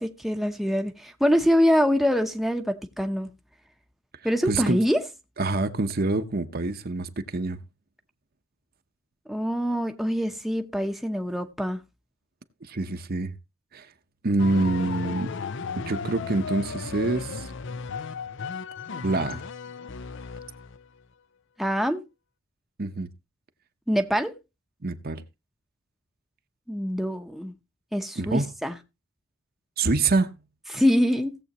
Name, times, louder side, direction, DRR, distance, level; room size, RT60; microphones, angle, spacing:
voice 1, 0.0-3.3 4.2-5.0 9.3-11.8 21.6-22.0 23.9-24.3 26.7-27.5 27.9-28.8 30.7-31.4, equal, ahead, 0.8 m, -24 dB
voice 2, 4.4-4.8 5.4-7.6 12.6-13.4 13.7-13.9 14.2-15.3 15.8-17.5 19.0-19.4 22.8-23.1 24.8-25.2 28.2-28.5 29.8-30.3, right 3 dB, 45° right, 0.9 m, -26 dB
sound 1, 14.4-20.9, left 5 dB, 60° left, 0.6 m, -35 dB
17.0 x 7.8 x 3.0 m
head